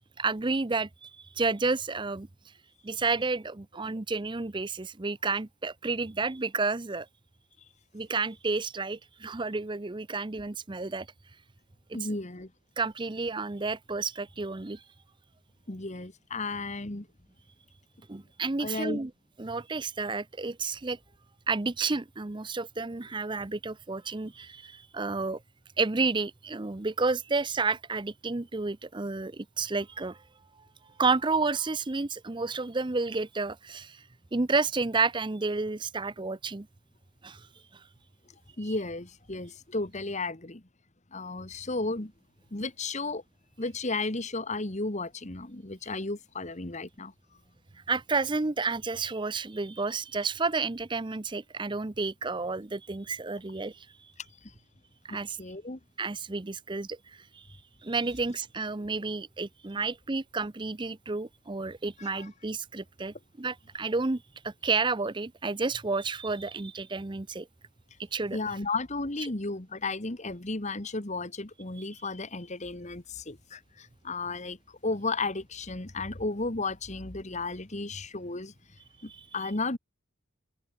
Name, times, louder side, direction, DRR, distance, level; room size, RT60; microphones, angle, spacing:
voice 1, 0.2-1.1 1.4-2.3 2.8-7.1 7.9-11.1 11.9-12.2 12.8-14.8 18.1-19.1 19.4-21.0 21.5-25.4 25.8-30.2 31.0-34.0 34.3-36.7 37.2-37.5 47.9-53.9 55.0-55.4 56.0-57.0 57.3-57.4 57.8-67.5 68.1-68.4 79.1-79.3, right 3 dB, 20° right, 0.6 m, -31 dB
voice 2, 11.9-12.5 15.7-17.1 18.6-19.0 38.6-40.6 41.1-42.1 42.5-43.2 43.6-47.1 54.4-54.5 55.4-55.8 62.0-62.3 68.3-78.5 79.0-79.8, left 3 dB, 35° left, 1.6 m, -34 dB
head